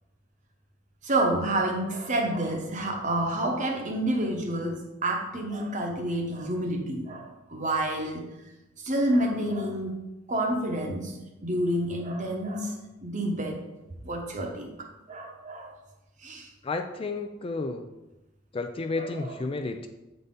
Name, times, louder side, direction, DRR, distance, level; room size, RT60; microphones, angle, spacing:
voice 1, 1.0-8.3 8.8-9.9 10.3-12.7 13.0-13.6 14.0-15.7 16.2-16.5 18.9-19.3, right 1 dB, 40° right, 2 dB, 1.0 m, -29 dB
voice 2, 16.6-17.8 18.5-19.9, left 3 dB, 30° left, 6 dB, 0.4 m, -31 dB
8.2 x 4.0 x 3.8 m, 1.0 s
head